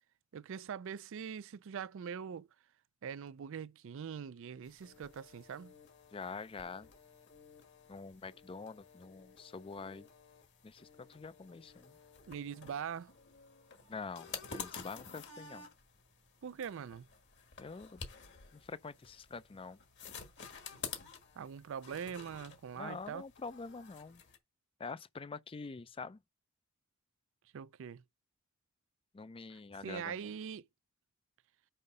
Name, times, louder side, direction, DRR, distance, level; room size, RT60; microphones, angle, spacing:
voice 1, 0.3-2.5 3.0-5.7 12.3-13.1 16.4-17.1 21.4-23.2 27.5-28.0 29.5-30.7, right 7 dB, 65° right, 0.4 m, -43 dB
sound 1, 4.6-24.4, left 5 dB, 55° left, 1.4 m, -51 dB
voice 2, 6.1-6.9 7.9-10.1 10.6-12.0 13.9-15.7 17.6-18.0 18.5-19.8 22.7-24.2 24.8-26.2 29.1-30.1, left 4 dB, 25° left, 0.4 m, -46 dB
5.5 x 4.6 x 5.4 m
head